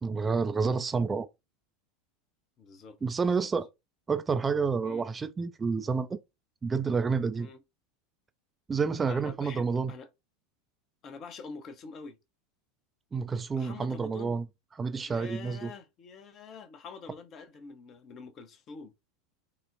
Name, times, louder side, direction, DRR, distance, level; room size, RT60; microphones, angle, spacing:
voice 1, 0.0-1.3 3.0-3.7 4.1-6.2 6.6-7.5 8.7-9.9 13.1-14.5 14.8-15.7, right 5 dB, 20° right, 0.3 m, -29 dB
voice 2, 2.6-3.0 3.4-3.5 4.8-5.1 7.4-7.6 9.1-10.1 11.0-12.2 13.5-14.4 15.0-18.9, left 5 dB, 35° left, 0.7 m, -46 dB
3.9 x 2.1 x 2.6 m
figure-of-eight pair, 80°, 0 cm